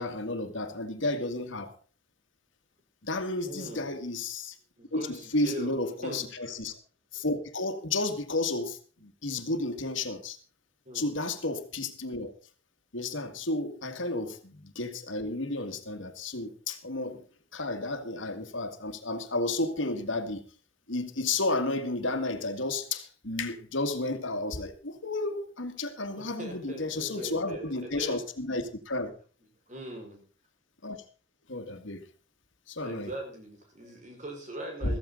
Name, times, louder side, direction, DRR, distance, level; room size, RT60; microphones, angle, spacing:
voice 1, 0.0-1.7 3.0-4.6 4.9-6.8 7.1-10.4 10.9-12.3 12.9-17.2 17.5-20.4 20.9-29.1 30.8-31.0 31.5-32.0 32.7-33.1 34.8-35.0, left 2 dB, 80° left, 2.1 m, -32 dB
voice 2, 3.4-3.9 4.8-6.3 10.9-11.2 26.1-28.2 29.7-30.2 32.8-35.0, right 1 dB, 40° right, 5.4 m, -41 dB
15.0 x 14.5 x 3.9 m
head